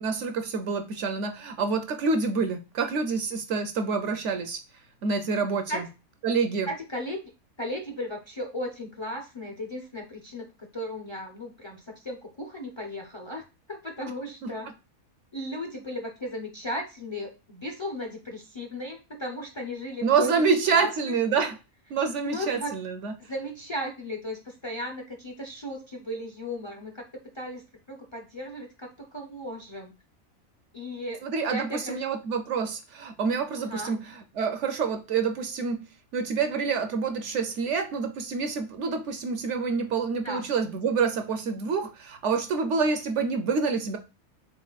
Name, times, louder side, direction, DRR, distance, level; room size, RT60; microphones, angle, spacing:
voice 1, 0.0-4.6 5.0-5.8 6.2-6.7 14.4-14.5 20.0-21.6 21.9-23.1 31.2-44.0, right 5 dB, 65° right, 7 dB, 0.9 m, -27 dB
voice 2, 6.7-7.2 7.6-13.4 13.7-14.7 15.3-20.4 20.7-21.1 22.2-22.8 23.2-27.1 27.3-29.9 30.7-31.2 31.5-32.0 33.6-34.0 40.2-40.5, equal, 30° left, 3 dB, 0.5 m, -36 dB
4.1 x 3.8 x 2.3 m, 0.28 s
omnidirectional pair, 1.4 m